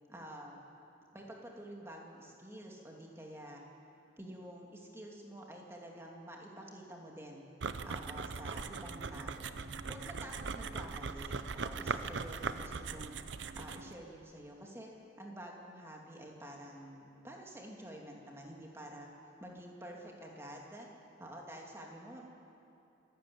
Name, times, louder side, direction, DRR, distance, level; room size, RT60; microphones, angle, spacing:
voice 1, 0.1-0.6 1.1-3.6 4.2-7.5 7.8-9.6 9.9-13.2 13.6-14.9 15.2-19.1 19.4-20.9 21.2-22.2, right 1 dB, 15° right, -1 dB, 2.6 m, -49 dB
sound 1, 7.6-13.9, right 4 dB, 80° right, 0.7 m, -40 dB
25.5 x 12.5 x 8.6 m, 2.7 s
head